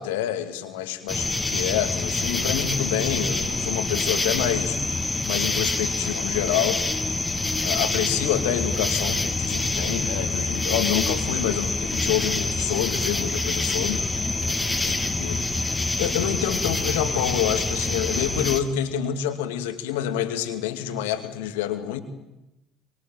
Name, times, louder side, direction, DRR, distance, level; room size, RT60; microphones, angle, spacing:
voice 1, 0.0-4.8 5.3-6.8 7.6-14.0 14.8-14.9 15.2-15.4 16.0-22.0, left 10 dB, 75° left, 9 dB, 2.4 m, -27 dB
sound 1, 1.1-18.6, left 2 dB, 15° left, 2.9 m, -26 dB
24.5 x 24.0 x 9.3 m, 0.93 s
hypercardioid pair, 60°, 0 cm